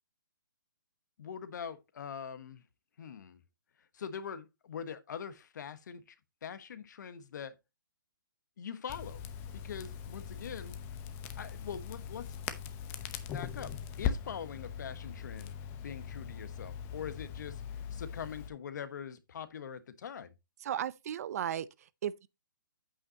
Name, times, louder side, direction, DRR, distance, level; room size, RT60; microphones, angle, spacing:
voice 1, 1.2-2.6 3.0-3.4 3.9-6.2 6.4-7.6 8.6-9.2 9.5-10.8 11.4-12.4 13.3-15.5 15.8-20.3, left 7 dB, 60° left, 1.2 m, -43 dB
Crackle, 8.9-18.5, left 8 dB, 20° left, 0.8 m, -40 dB
voice 2, 20.6-22.3, right 10 dB, 45° right, 0.6 m, -36 dB
8.6 x 8.4 x 2.9 m
hypercardioid pair, 150°, 11 cm